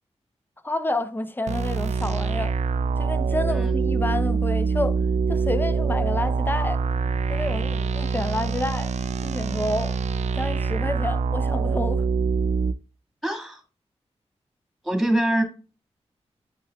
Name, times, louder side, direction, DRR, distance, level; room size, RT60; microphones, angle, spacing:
voice 1, 0.6-2.5 3.0-5.0 5.3-6.8 7.3-8.9 9.2-9.9 10.3-12.0, left 2 dB, 15° left, 0.7 m, -29 dB
sound 1, 1.5-12.7, right 4 dB, 85° right, 0.4 m, -25 dB
voice 2, 13.2-13.6 14.8-15.4, right 1 dB, ahead, 1.8 m, -24 dB
9.7 x 6.0 x 2.3 m
wide cardioid pair, 100°, 11 cm